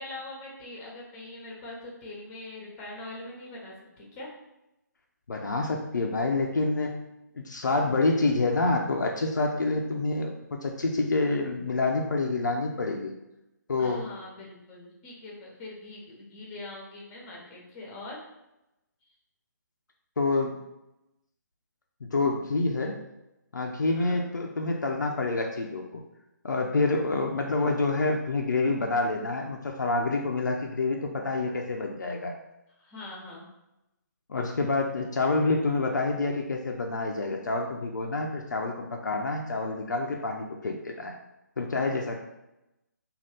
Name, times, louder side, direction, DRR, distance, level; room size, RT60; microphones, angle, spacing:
voice 1, 0.0-4.3 13.8-18.2 19.0-19.1 23.9-24.2 32.8-33.5, left 2 dB, 25° left, -2 dB, 0.8 m, -42 dB
voice 2, 5.3-6.9 7.4-13.1 13.7-14.0 20.2-20.6 22.0-22.9 23.5-26.0 26.4-32.3 34.3-41.1 41.6-42.2, left 3 dB, 70° left, 1 dB, 0.4 m, -27 dB
2.6 x 2.4 x 3.3 m, 0.92 s
figure-of-eight pair, 140°, 10 cm